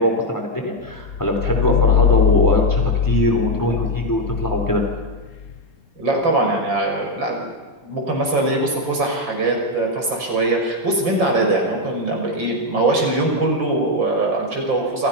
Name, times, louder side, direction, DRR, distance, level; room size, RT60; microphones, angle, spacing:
voice 1, 0.0-4.8, equal, 10° left, 3 dB, 3.7 m, -21 dB
sound 1, 0.9-5.6, left 8 dB, 50° left, 1.1 m, -21 dB
voice 2, 6.0-7.5 7.8-15.1, right 2 dB, 70° right, 1 dB, 6.8 m, -21 dB
28.5 x 28.0 x 5.9 m, 1.3 s
omnidirectional pair, 2.1 m